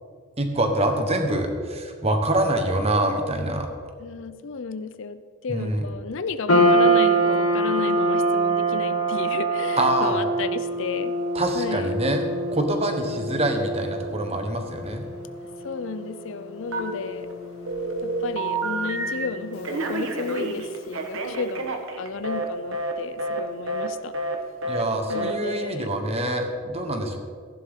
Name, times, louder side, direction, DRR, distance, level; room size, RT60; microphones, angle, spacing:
voice 1, 0.4-3.7 5.5-5.8 9.8-10.2 11.3-12.2 12.5-15.0 24.6-27.2, right 1 dB, 25° right, 5 dB, 1.1 m, -25 dB
voice 2, 4.0-11.1 11.5-11.9 15.6-17.3 18.0-24.1 25.1-25.9, left 4 dB, 55° left, 12 dB, 0.5 m, -33 dB
sound 1, 6.5-20.9, right 2 dB, 85° left, 1.9 m, -26 dB
Telephone, 16.7-17.3 17.7-19.3 19.6-22.5 22.7-22.9 23.2-23.4 23.7-23.9 24.1-24.4 24.6-24.8 25.1-25.3, right 2 dB, 60° right, 1.2 m, -29 dB
15.0 x 11.0 x 3.7 m, 2.1 s
head